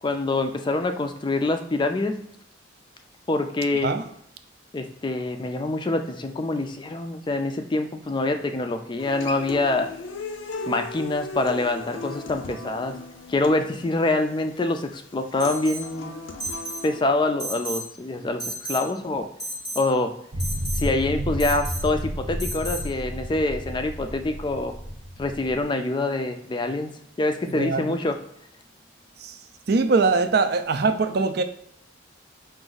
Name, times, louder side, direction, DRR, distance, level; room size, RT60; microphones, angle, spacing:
voice 1, 0.0-2.2 3.3-3.9 4.7-9.9 10.7-12.9 13.3-16.1 16.8-19.3 19.8-20.2 20.7-24.7 25.2-26.9 27.2-28.2, left 2 dB, 25° left, 7 dB, 0.3 m, -25 dB
Human voice / Acoustic guitar, 9.0-17.0, left 3 dB, 85° left, 0.6 m, -37 dB
Alarm, 15.4-15.9 16.4-16.9 17.4-17.9 18.4-18.9 19.4-19.9 20.4-20.8 21.4-21.8 22.4-22.8, right 1 dB, ahead, 0.8 m, -33 dB
sound 1, 20.3-25.6, equal, 75° right, 0.8 m, -31 dB
voice 2, 27.5-28.0 29.2-29.3 29.7-31.4, right 4 dB, 55° right, 9 dB, 0.4 m, -22 dB
4.9 x 2.5 x 3.9 m, 0.74 s
head